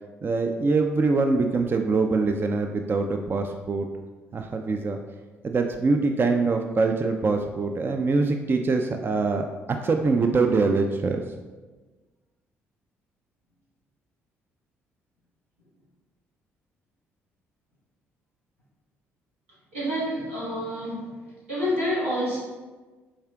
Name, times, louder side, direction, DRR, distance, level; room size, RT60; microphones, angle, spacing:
voice 1, 0.2-3.9 4.3-5.0 5.4-11.2, right 3 dB, 35° right, 5 dB, 0.4 m, -24 dB
voice 2, 19.7-21.2 21.5-22.4, equal, 90° right, -9 dB, 1.5 m, -28 dB
5.5 x 3.6 x 2.3 m, 1.3 s
hypercardioid pair, 50°, 7 cm